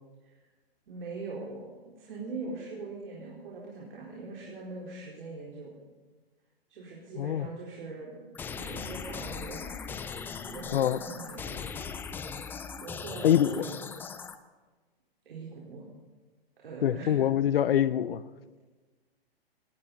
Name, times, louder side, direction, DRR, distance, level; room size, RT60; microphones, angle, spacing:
voice 1, 0.9-5.8 6.7-8.2 8.5-9.7 10.5-11.6 12.8-13.8 15.3-15.9 16.6-17.2, right 3 dB, 65° right, -4 dB, 4.4 m, -41 dB
voice 2, 7.2-7.5 10.7-11.0 13.2-13.6 16.8-18.2, left 10 dB, 70° left, 17 dB, 0.7 m, -24 dB
sound 1, 8.3-14.4, left 6 dB, 5° left, 0.4 m, -39 dB
18.5 x 18.0 x 4.1 m, 1.3 s
hypercardioid pair, 135°, 30 cm